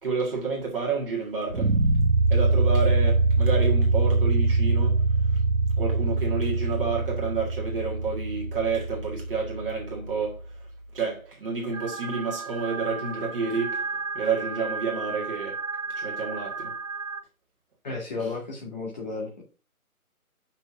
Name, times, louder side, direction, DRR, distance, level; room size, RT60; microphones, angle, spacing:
voice 1, 0.0-1.7 2.3-5.0 5.8-10.4 10.9-13.8 14.1-15.6 15.9-16.8, right 4 dB, 40° right, 1.9 m, -29 dB
sound 1, 1.5-10.5, right 3 dB, 85° right, 1.6 m, -24 dB
sound 2, 11.7-17.2, right 4 dB, 60° right, 1.0 m, -34 dB
voice 2, 17.8-19.4, left 3 dB, 30° left, 1.8 m, -33 dB
6.4 x 6.0 x 4.8 m
figure-of-eight pair, 150°, 44 cm